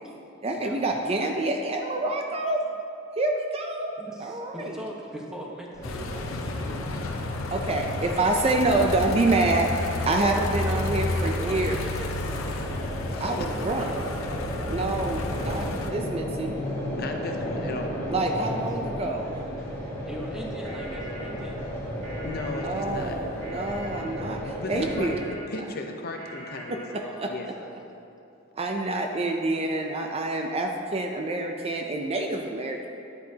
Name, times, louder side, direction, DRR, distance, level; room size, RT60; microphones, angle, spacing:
voice 1, 0.4-2.6 3.2-3.9 4.2-4.8 7.5-9.7 10.0-11.8 13.2-13.9 14.7-16.6 18.1-19.3 22.6-25.2 26.9-27.3 28.6-32.9, right 2 dB, 30° right, 3 dB, 0.5 m, -27 dB
voice 2, 4.0-6.8 10.3-12.3 13.6-14.1 18.8-19.1 20.0-21.7 26.9-27.9, equal, 5° right, -3 dB, 1.2 m, -40 dB
sound 1, 5.7-25.2, equal, 15° left, 1.9 m, -34 dB
sound 2, 5.8-15.9, left 2 dB, 85° left, 0.7 m, -31 dB
voice 3, 12.8-13.5 16.9-18.0 22.2-23.2 24.5-27.5, left 2 dB, 50° left, 3 dB, 0.7 m, -36 dB
sound 3, 20.6-27.3, right 1 dB, 80° right, 1.9 m, -44 dB
10.0 x 9.9 x 2.8 m, 2.7 s
head